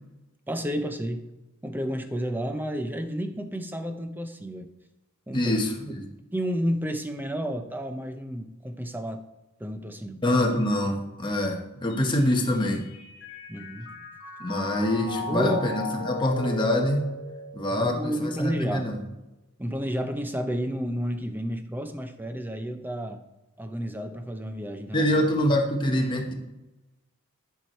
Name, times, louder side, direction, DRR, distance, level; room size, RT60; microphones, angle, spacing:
voice 1, 0.5-1.3 1.6-4.7 5.3-5.6 5.9-6.0 6.3-9.2 9.6-10.2 13.5-13.9 15.0-15.6 17.7-18.9 19.6-23.2 23.6-25.1 25.5-25.6, equal, 10° right, 7 dB, 0.6 m, -31 dB
voice 2, 5.3-6.0 10.2-12.8 14.4-17.1 17.5-19.0 24.9-26.3, left 1 dB, 20° left, 0 dB, 1.2 m, -25 dB
Mallet percussion, 11.9-18.3, left 1 dB, 55° left, 1.5 m, -37 dB
11.0 x 4.7 x 4.5 m, 1.0 s
head